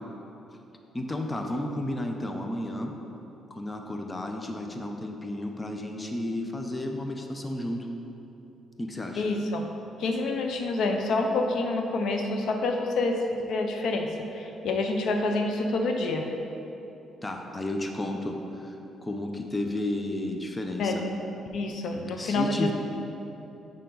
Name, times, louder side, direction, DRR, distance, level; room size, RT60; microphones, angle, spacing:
voice 1, 0.9-2.9 3.5-7.9 8.8-9.2 17.2-21.0 22.2-22.7, left 1 dB, 20° left, 3 dB, 0.6 m, -32 dB
voice 2, 9.2-9.7 10.0-16.2 20.8-21.1 21.5-22.7, left 2 dB, 75° left, 3 dB, 0.5 m, -27 dB
6.8 x 5.1 x 3.8 m, 3.0 s
cardioid pair, 90°, 0 cm